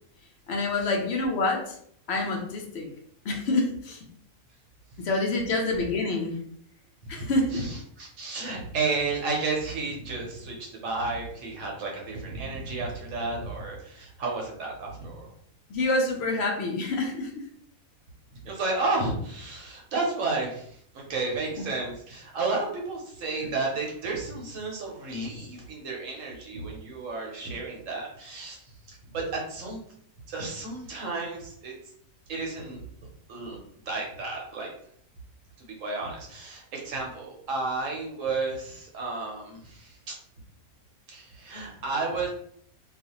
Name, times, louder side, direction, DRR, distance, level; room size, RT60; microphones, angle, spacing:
voice 1, 0.5-1.8 2.1-2.9 3.2-4.1 5.0-6.4 7.1-7.7 15.7-17.4 21.5-21.6, left 2 dB, 65° left, 1 dB, 0.7 m, -27 dB
voice 2, 7.0-15.3 18.4-29.8 30.3-31.7 32.3-32.8 33.3-33.6 33.9-34.7 35.6-40.2 41.1-42.3, right 3 dB, 65° right, -1 dB, 1.0 m, -32 dB
2.4 x 2.4 x 2.8 m, 0.66 s
omnidirectional pair, 1.5 m